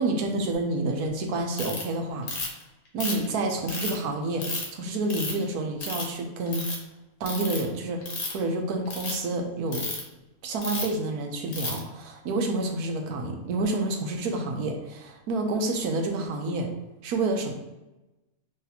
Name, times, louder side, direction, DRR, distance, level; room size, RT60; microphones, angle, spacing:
voice 1, 0.0-2.3 2.9-6.7 7.2-8.0 8.3-9.8 10.4-16.7 17.0-17.5, right 2 dB, 85° right, 3 dB, 1.3 m, -29 dB
Ratchet pawl, 1.6-1.8 2.3-2.6 3.0-3.9 4.4-4.7 5.1-5.4 5.8-6.2 6.5-6.8 7.3-7.6 8.0-8.4 8.9-9.1 9.7-10.0 10.6-10.9 11.5-11.8, left 3 dB, 75° left, 1.5 m, -32 dB
3.7 x 2.7 x 4.1 m, 1.0 s
omnidirectional pair, 1.6 m